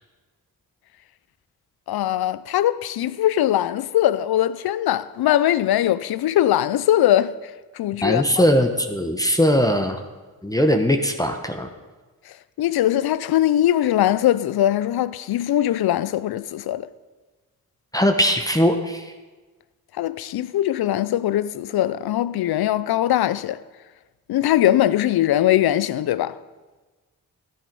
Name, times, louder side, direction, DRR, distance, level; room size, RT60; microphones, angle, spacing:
voice 1, 1.9-7.4 7.7-8.4 12.3-16.9 20.0-23.6 24.3-26.4, left 12 dB, 80° left, 0.6 m, -21 dB
voice 2, 8.0-10.0 10.4-11.7 17.9-19.1, equal, 10° left, 1.1 m, -20 dB
13.5 x 8.7 x 5.4 m
cardioid pair, 65°, 37 cm